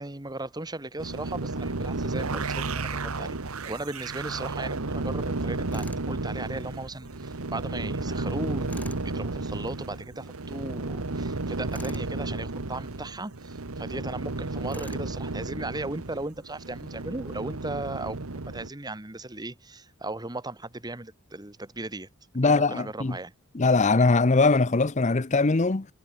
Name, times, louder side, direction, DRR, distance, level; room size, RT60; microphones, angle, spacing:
voice 1, 0.0-3.4 3.6-8.7 9.0-22.1 22.4-23.3, right 2 dB, 20° right, 1.5 m, -37 dB
sound 1, 1.0-18.7, right 3 dB, 85° right, 1.4 m, -33 dB
Tools, 5.7-6.1 8.7-9.1 11.7-12.1 14.7-15.1, left 1 dB, 5° left, 1.6 m, -43 dB
voice 2, 22.4-23.2 23.5-25.9, left 3 dB, 35° left, 0.7 m, -21 dB
head